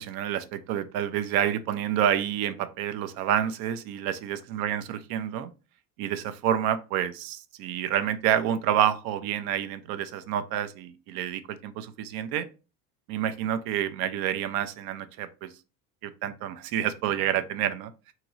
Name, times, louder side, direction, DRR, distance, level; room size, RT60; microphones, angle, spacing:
voice 1, 0.0-5.5 6.0-12.5 13.1-15.5 16.0-17.9, right 10 dB, 55° right, 13 dB, 0.5 m, -28 dB
2.9 x 2.8 x 2.5 m, 0.32 s
hypercardioid pair, 85°, 44 cm